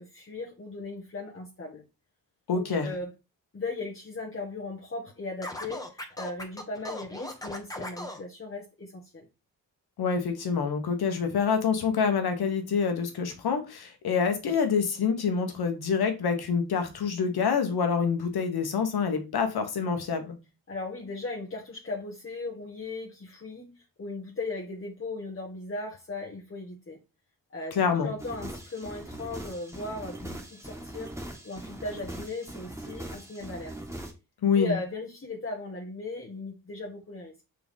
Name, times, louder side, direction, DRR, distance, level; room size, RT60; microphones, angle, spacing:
voice 1, 0.0-1.8 2.5-3.1 3.5-9.2 20.7-27.0 27.5-27.8 28.0-31.1 31.4-33.7 34.5-37.4, left 2 dB, 35° left, 1.5 m, -37 dB
voice 2, 2.5-2.9 10.0-20.3 27.7-28.1 34.4-34.8, left 6 dB, 80° left, 1.4 m, -26 dB
Scratching (performance technique), 5.4-8.2, left 1 dB, 10° left, 1.4 m, -38 dB
sound 1, 28.2-34.1, right 1 dB, 10° right, 1.9 m, -41 dB
6.4 x 4.6 x 3.7 m
cardioid pair, 95°, 37 cm